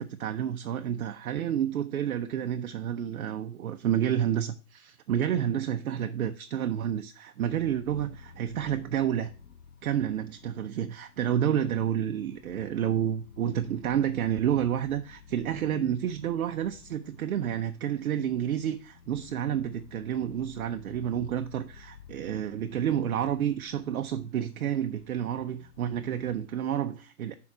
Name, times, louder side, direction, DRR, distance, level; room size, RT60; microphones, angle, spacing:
voice 1, 0.0-9.3 9.8-27.3, right 10 dB, 75° right, 0.6 m, -30 dB
sound 1, 7.5-26.4, left 6 dB, 90° left, 0.9 m, -53 dB
5.9 x 3.8 x 6.0 m
figure-of-eight pair, 110°, 43 cm